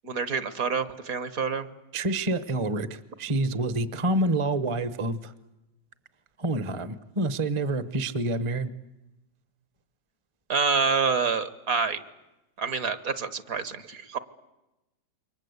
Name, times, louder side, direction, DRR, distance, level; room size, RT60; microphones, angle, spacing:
voice 1, 0.0-1.7 10.5-12.0 12.6-14.2, right 5 dB, 55° right, 14 dB, 1.7 m, -27 dB
voice 2, 1.9-5.3 6.4-8.7, right 2 dB, 20° right, 14 dB, 0.9 m, -27 dB
28.5 x 24.0 x 8.2 m, 0.97 s
omnidirectional pair, 1.9 m